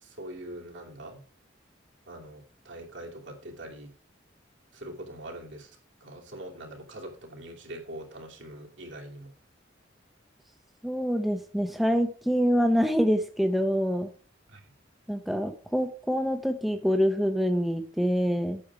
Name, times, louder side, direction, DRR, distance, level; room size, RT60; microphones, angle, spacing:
voice 1, 0.0-1.2 2.1-3.9 4.7-5.7 6.0-9.3 14.5-14.6, right 1 dB, 70° right, 0 dB, 2.8 m, -43 dB
voice 2, 10.8-14.1 15.1-18.6, equal, ahead, 6 dB, 0.7 m, -26 dB
8.8 x 6.9 x 4.8 m, 0.41 s
head